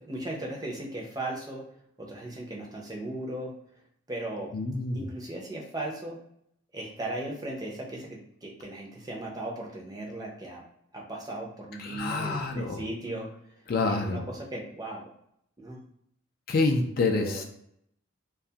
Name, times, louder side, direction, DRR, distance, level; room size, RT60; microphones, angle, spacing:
voice 1, 0.0-1.6 2.0-3.5 4.1-4.5 4.9-6.2 6.7-10.6 10.9-13.3 13.8-15.1 15.6-15.8 17.1-17.4, right 1 dB, 20° right, -1 dB, 0.5 m, -37 dB
voice 2, 4.5-5.0 11.8-12.8 13.7-14.2 16.5-17.4, left 3 dB, 45° left, 4 dB, 0.3 m, -27 dB
2.4 x 2.3 x 2.7 m, 0.71 s
head